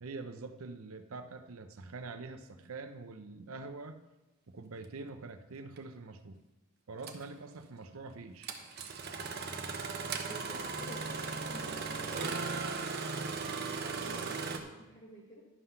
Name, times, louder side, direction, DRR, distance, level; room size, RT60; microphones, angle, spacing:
voice 1, 0.0-4.0 4.5-6.4 6.9-8.5, right 3 dB, 75° right, 8 dB, 0.6 m, -45 dB
Engine starting, 5.8-5.9 7.0-7.2 8.4-14.6, right 4 dB, 50° right, 0.9 m, -37 dB
voice 2, 10.2-12.4 13.4-15.4, equal, 20° left, -5 dB, 1.4 m, -51 dB
11.0 x 5.7 x 5.7 m, 1.0 s
head